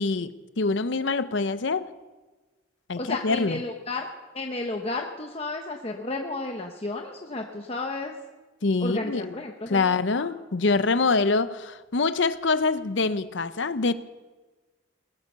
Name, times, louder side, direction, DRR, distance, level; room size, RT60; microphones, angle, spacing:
voice 1, 0.0-1.9 2.9-3.6 8.6-9.4 9.7-13.9, left 3 dB, 65° left, 0.7 m, -25 dB
voice 2, 3.0-8.1 8.8-10.3, left 2 dB, 30° left, 1.0 m, -33 dB
20.5 x 9.9 x 6.9 m
head